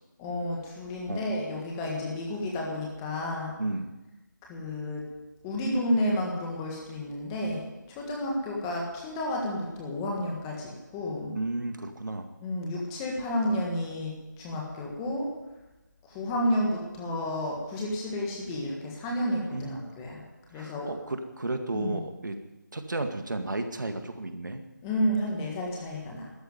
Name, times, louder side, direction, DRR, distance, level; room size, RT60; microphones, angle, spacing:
voice 1, 0.2-3.5 4.4-5.0 5.4-11.4 12.4-15.3 16.0-20.2 20.5-20.9 21.7-22.0 24.8-26.3, left 1 dB, 10° left, -2 dB, 1.6 m, -31 dB
voice 2, 11.3-12.3 19.5-19.9 20.5-22.4 22.7-24.6, right 2 dB, 70° right, 6 dB, 2.0 m, -33 dB
13.0 x 10.0 x 9.4 m, 1.1 s
figure-of-eight pair, 170°, 10 cm